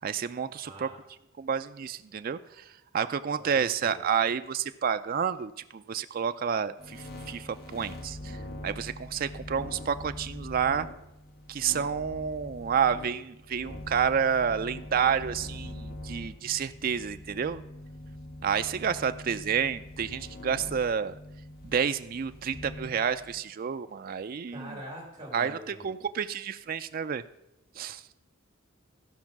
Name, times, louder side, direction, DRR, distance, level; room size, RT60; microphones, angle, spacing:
voice 1, 0.0-0.9 1.4-2.6 2.9-10.9 11.5-17.6 18.4-21.2 21.6-24.8 25.3-27.2 27.8-28.0, right 7 dB, 45° right, 10 dB, 0.4 m, -30 dB
voice 2, 0.6-1.0 3.4-4.0 24.5-25.8, equal, 20° right, -2 dB, 3.0 m, -44 dB
sound 1, 6.8-23.4, left 1 dB, 50° left, 1.6 m, -43 dB
14.0 x 5.3 x 6.0 m, 0.85 s
head